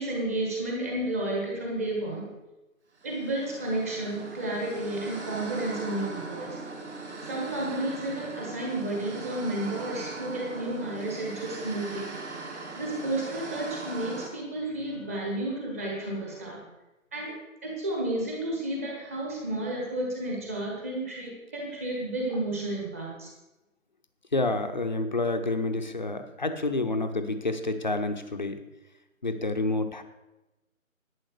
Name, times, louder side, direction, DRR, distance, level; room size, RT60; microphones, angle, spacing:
voice 1, 0.0-2.3 3.0-6.6 7.2-12.1 12.8-16.6 17.1-17.3 17.6-23.3, right 1 dB, 10° right, -2 dB, 1.3 m, -32 dB
sound 1, 3.0-14.3, right 3 dB, 50° right, 3.1 m, -40 dB
voice 2, 24.3-28.6 29.2-30.0, left 2 dB, 35° left, 7 dB, 0.9 m, -28 dB
11.0 x 9.0 x 6.6 m, 1.0 s
figure-of-eight pair, 155°, 42 cm